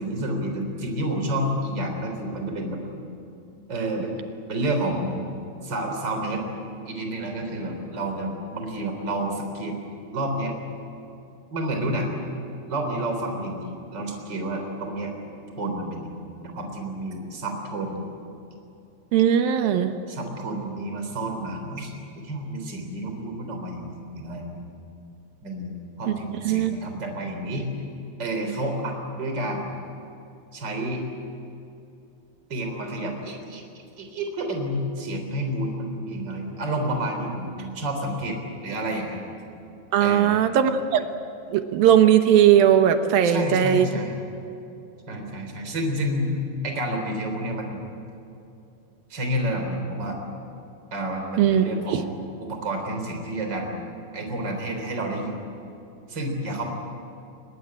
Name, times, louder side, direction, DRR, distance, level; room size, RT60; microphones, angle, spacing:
voice 1, 0.0-2.8 3.7-4.2 4.5-5.3 5.6-6.4 6.9-9.8 10.1-10.5 11.5-12.1 12.7-15.1 15.6-18.0 20.1-24.6 25.4-27.7 28.2-29.7 30.5-31.1 32.5-33.6 34.0-38.4 38.6-39.3 40.0-40.4 43.2-44.2 45.1-47.8 49.1-50.2 50.9-53.8 54.1-55.4 56.1-56.7, right 1 dB, 25° right, 3 dB, 3.9 m, -30 dB
voice 2, 19.1-19.9 26.4-26.7 39.9-41.1 41.5-44.0 51.4-52.0, right 9 dB, 70° right, 8 dB, 2.6 m, -19 dB
24.5 x 20.5 x 8.8 m, 2.7 s
omnidirectional pair, 4.8 m